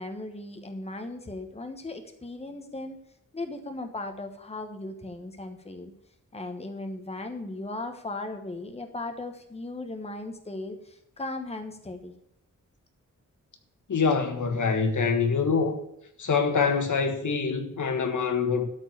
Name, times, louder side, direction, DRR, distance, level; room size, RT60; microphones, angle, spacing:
voice 1, 0.0-3.0 3.3-5.9 6.3-12.1, left 2 dB, 20° left, 1.2 m, -37 dB
voice 2, 13.9-15.8 16.2-18.7, left 5 dB, 70° left, 1.5 m, -25 dB
12.5 x 4.6 x 8.3 m
wide cardioid pair, 135°, 31 cm